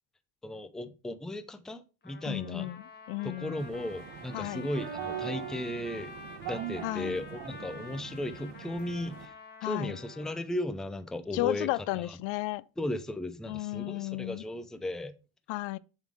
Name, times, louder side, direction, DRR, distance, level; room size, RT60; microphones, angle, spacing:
voice 1, 0.4-2.7 3.2-6.1 6.5-9.3 9.6-11.7 11.9-12.2 12.8-15.1, left 1 dB, ahead, 0.4 m, -36 dB
Trumpet, 2.0-10.5, left 3 dB, 25° left, 0.8 m, -48 dB
voice 2, 2.2-3.6 4.3-4.7 6.8-7.2 9.6-10.0 11.3-12.6 13.5-14.4 15.5-15.8, left 18 dB, 85° left, 0.6 m, -33 dB
sound 1, 3.6-9.3, right 9 dB, 75° right, 1.0 m, -41 dB
7.2 x 3.9 x 4.8 m
cardioid pair, 125°, 44 cm